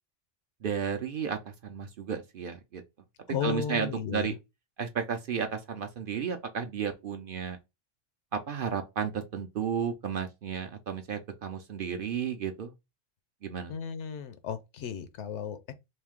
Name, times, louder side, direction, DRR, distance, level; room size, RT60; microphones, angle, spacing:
voice 1, 0.6-2.8 3.4-4.3 4.8-7.6 8.3-12.7 13.4-13.7, right 7 dB, 55° right, 0.7 m, -33 dB
voice 2, 3.3-4.4 13.7-15.7, left 7 dB, 75° left, 0.9 m, -34 dB
3.1 x 2.7 x 3.5 m
omnidirectional pair, 1.2 m